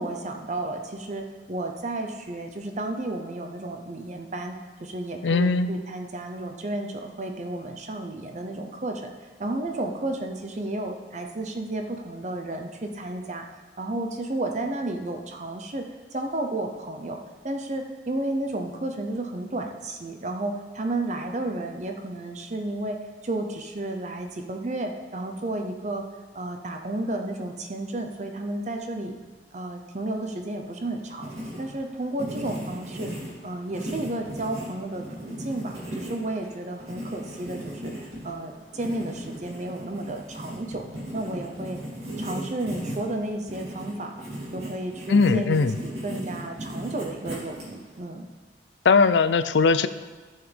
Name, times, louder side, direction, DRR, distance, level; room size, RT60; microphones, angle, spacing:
voice 1, 0.0-4.6 4.8-9.1 9.4-15.9 16.1-17.2 17.4-23.0 23.2-26.0 26.3-29.2 29.5-31.3 31.6-33.1 33.4-40.8 41.1-41.8 42.2-44.3 44.5-48.3, right 2 dB, 40° right, 4 dB, 0.7 m, -32 dB
voice 2, 5.2-5.7 45.1-45.8 48.8-49.9, left 4 dB, 85° left, 13 dB, 0.4 m, -19 dB
Writing, 30.8-48.0, right 1 dB, 65° right, 3.1 m, -37 dB
14.0 x 7.2 x 3.4 m, 1.4 s
head